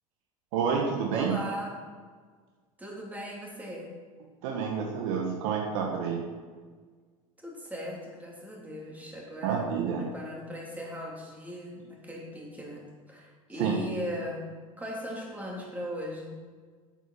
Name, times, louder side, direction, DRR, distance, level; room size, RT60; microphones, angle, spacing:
voice 1, 0.5-1.3 4.4-6.2 9.4-10.0 13.6-13.8, right 6 dB, 60° right, 1 dB, 1.6 m, -29 dB
voice 2, 1.1-1.8 2.8-4.0 7.4-16.4, equal, 10° right, -3 dB, 3.3 m, -38 dB
8.5 x 8.2 x 5.7 m, 1.5 s
hypercardioid pair, 80°, 18 cm